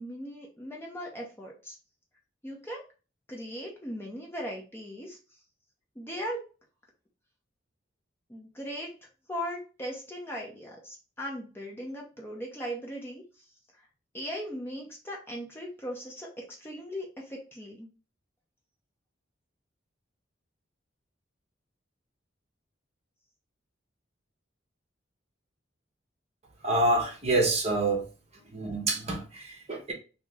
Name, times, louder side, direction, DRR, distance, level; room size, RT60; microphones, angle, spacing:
voice 1, 0.0-1.8 2.4-2.8 3.3-5.2 5.9-6.4 8.3-8.9 9.3-13.4 14.1-17.9, equal, 10° left, 0.7 m, -38 dB
voice 2, 26.6-28.0 28.5-29.9, right 2 dB, 35° right, 0.9 m, -27 dB
2.9 x 2.8 x 3.5 m
head